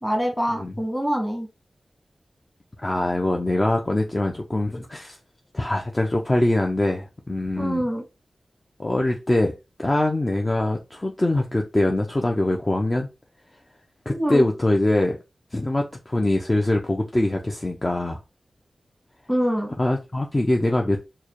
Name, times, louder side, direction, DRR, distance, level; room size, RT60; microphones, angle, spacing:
voice 1, 0.0-1.5 7.6-8.0 14.1-14.4 19.3-19.7, equal, 5° left, 1.3 m, -25 dB
voice 2, 2.8-5.2 5.5-7.8 8.8-9.5 9.8-13.1 14.1-15.2 15.5-18.2 19.8-21.0, left 1 dB, 25° left, 0.5 m, -23 dB
4.5 x 2.2 x 2.9 m
wide cardioid pair, 100°, 0 cm